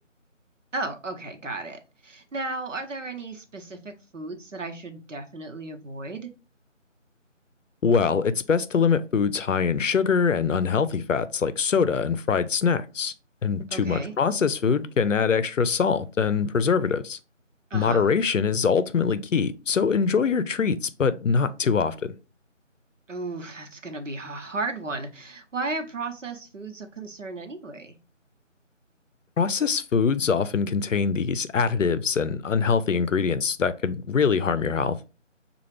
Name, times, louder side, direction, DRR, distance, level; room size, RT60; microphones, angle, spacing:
voice 1, 0.7-6.3 13.7-14.1 17.7-18.1 23.1-28.0, right 3 dB, 70° right, 1.0 m, -34 dB
voice 2, 7.8-13.1 13.4-17.2 17.7-22.1 29.4-35.0, left 6 dB, 75° left, 0.6 m, -23 dB
5.5 x 2.4 x 3.2 m
figure-of-eight pair, 165°, 38 cm